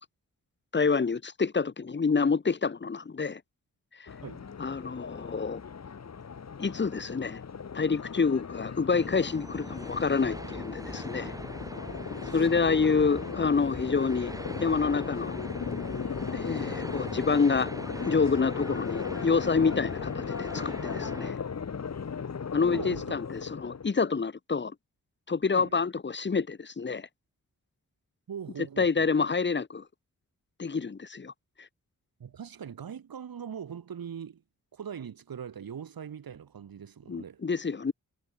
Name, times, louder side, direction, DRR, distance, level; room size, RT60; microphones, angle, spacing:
voice 1, 0.7-3.4 4.0-4.1 4.6-5.6 6.6-7.4 7.7-11.3 12.3-14.3 14.6-15.4 16.3-17.7 18.0-21.4 22.5-24.7 25.3-27.1 28.8-29.8 30.6-31.3 31.6-31.7 37.1-37.9, left 5 dB, 30° left, 0.9 m, -27 dB
sound 1, 4.1-23.9, left 6 dB, 50° left, 1.1 m, -37 dB
sound 2, 8.9-21.3, right 1 dB, 10° right, 4.9 m, -42 dB
voice 2, 12.2-12.7 22.7-23.1 25.5-25.8 28.3-29.1 32.2-34.4 34.7-37.4, right 8 dB, 90° right, 4.0 m, -41 dB
cardioid pair, 50°, 34 cm